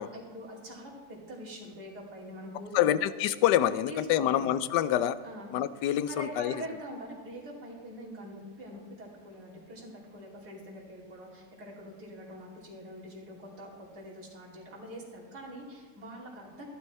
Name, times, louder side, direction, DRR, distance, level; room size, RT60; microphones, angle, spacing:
voice 1, 0.0-3.1 3.9-4.5 5.2-5.5 6.1-16.6, equal, 60° right, -4 dB, 3.3 m, -44 dB
voice 2, 2.7-5.2 5.5-6.6, left 11 dB, 80° left, 15 dB, 1.2 m, -26 dB
15.0 x 11.5 x 4.2 m, 1.4 s
omnidirectional pair, 1.9 m